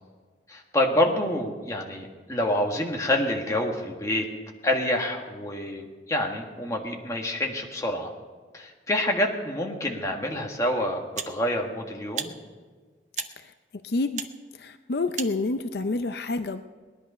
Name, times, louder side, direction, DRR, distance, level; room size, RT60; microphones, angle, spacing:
voice 1, 0.5-4.3 4.6-8.1 8.5-12.3, left 1 dB, 20° left, 0 dB, 1.6 m, -27 dB
sound 1, 10.2-10.4 11.1-11.4 12.1-12.3 13.1-13.3 14.1-14.3 15.1-15.4, right 8 dB, 45° right, 0.7 m, -34 dB
voice 2, 13.8-14.3 14.6-16.6, left 3 dB, 70° left, 9 dB, 0.5 m, -28 dB
18.5 x 11.0 x 5.6 m, 1.5 s
head